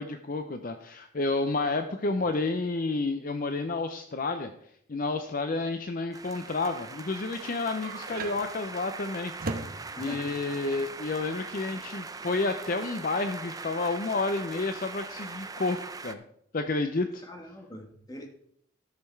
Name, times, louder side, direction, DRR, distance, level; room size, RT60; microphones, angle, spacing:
voice 1, 0.0-4.5 4.9-9.3 10.0-15.8 16.0-16.2 16.5-17.2, left 3 dB, 40° left, 7 dB, 0.5 m, -30 dB
sound 1, 6.1-16.2, right 4 dB, 15° right, 0.4 m, -41 dB
sound 2, 7.4-12.8, right 2 dB, 45° right, 1.0 m, -40 dB
voice 2, 17.3-18.3, equal, 20° left, 3 dB, 1.4 m, -43 dB
13.0 x 6.7 x 4.5 m, 0.70 s
head